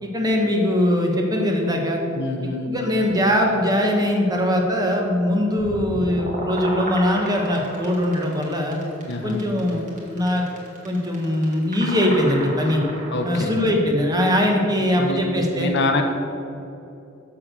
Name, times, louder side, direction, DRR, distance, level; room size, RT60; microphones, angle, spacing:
voice 1, 0.0-2.0 2.7-8.8 9.2-10.4 10.8-12.8 13.2-15.7, left 1 dB, 20° right, 1 dB, 1.1 m, -21 dB
voice 2, 2.1-2.7 9.1-9.4 13.1-13.6 14.8-15.2 15.6-16.0, left 2 dB, 55° left, 4 dB, 0.8 m, -25 dB
sound 1, 5.6-13.7, right 1 dB, 40° right, 1.7 m, -33 dB
7.2 x 6.4 x 6.2 m, 2.8 s
head